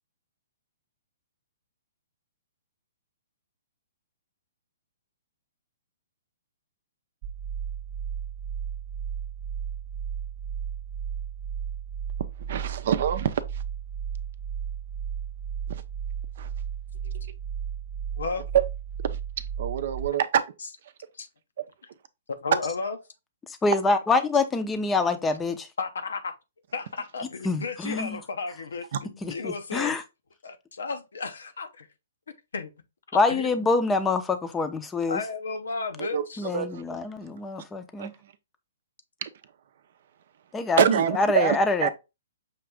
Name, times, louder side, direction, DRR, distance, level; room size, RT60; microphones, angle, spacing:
sound 1, 7.2-20.1, right 8 dB, 40° right, 0.9 m, -34 dB
voice 1, 12.5-13.4 15.7-15.8 16.4-16.5 19.6-20.4 28.9-29.0 36.0-36.2 36.5-36.8 38.0-38.1 39.2-39.3 40.8-41.9, right 9 dB, 60° right, 0.5 m, -25 dB
voice 2, 22.3-23.0 25.8-26.3 26.7-30.0 30.4-31.9 32.5-32.7 33.3-33.5 35.1-36.5, left 4 dB, 80° left, 0.7 m, -33 dB
voice 3, 23.6-25.7 27.4-28.2 29.2-30.0 33.1-35.2 36.4-38.1 40.5-41.9, left 3 dB, 10° left, 0.6 m, -25 dB
5.8 x 2.6 x 3.4 m
hypercardioid pair, 135°, 0 cm